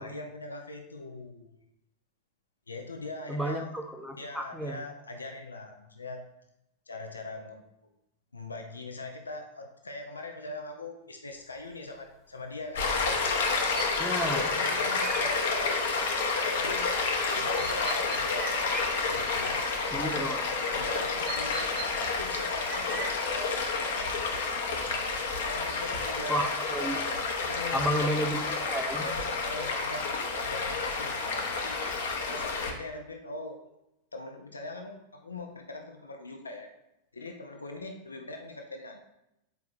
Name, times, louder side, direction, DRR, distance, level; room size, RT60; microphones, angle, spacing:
voice 1, 0.0-1.5 2.7-3.7 4.2-6.2 6.9-7.6 8.3-12.9 14.5-15.9 16.5-17.0 17.3-18.6 19.0-19.7 20.7-21.6 22.1-23.6 25.5-26.6 27.4-27.9 29.0-30.2 30.4-31.8 32.2-33.7 34.1-36.7 37.1-39.0, left 2 dB, 75° left, 4 dB, 0.6 m, -41 dB
voice 2, 3.3-4.8 14.0-14.5 19.9-20.5 26.3-27.0 27.7-29.1, right 1 dB, ahead, 2 dB, 0.7 m, -31 dB
sound 1, 11.4-11.5 13.7-15.4 15.7-15.8 17.6-20.1 21.2-21.9 22.7-24.5, right 4 dB, 20° right, 1.1 m, -40 dB
Stream, 12.8-32.7, left 4 dB, 60° left, 0.9 m, -30 dB
8.0 x 4.6 x 2.5 m, 0.87 s
figure-of-eight pair, 90°, 0 cm